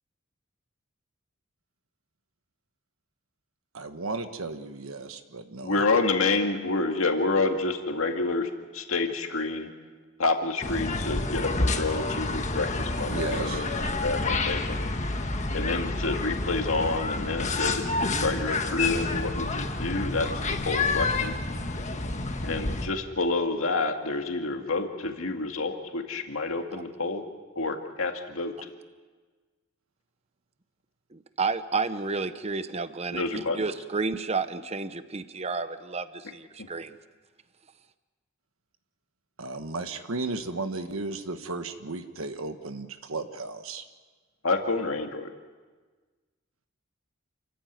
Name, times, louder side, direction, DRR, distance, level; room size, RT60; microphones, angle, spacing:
voice 1, 3.7-6.0 13.0-13.7 39.4-43.9, right 3 dB, 80° right, 8 dB, 1.3 m, -35 dB
voice 2, 5.7-9.7 10.2-13.7 14.0-14.8 15.2-15.3 15.5-20.3 20.6-21.3 22.4-27.2 27.6-28.5 33.1-33.6 44.4-45.3, left 3 dB, 75° left, 4 dB, 2.1 m, -28 dB
sound 1, 10.6-22.9, left 3 dB, 35° left, 1.5 m, -29 dB
voice 3, 31.1-37.0, right 4 dB, 30° right, 12 dB, 0.8 m, -31 dB
28.5 x 14.5 x 9.4 m, 1.4 s
head